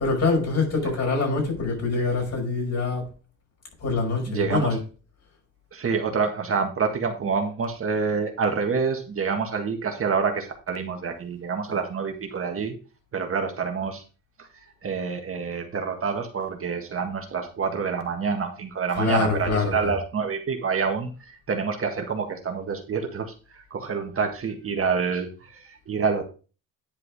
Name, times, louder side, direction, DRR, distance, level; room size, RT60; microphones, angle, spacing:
voice 1, 0.0-3.1 3.8-4.8 11.7-11.8 18.9-20.0, left 3 dB, 50° left, 0 dB, 5.6 m, -25 dB
voice 2, 4.3-4.8 5.7-12.7 13.1-14.0 14.4-26.2, right 5 dB, 40° right, 4 dB, 1.8 m, -27 dB
10.5 x 4.8 x 4.8 m, 0.35 s
cardioid pair, 105°, 33 cm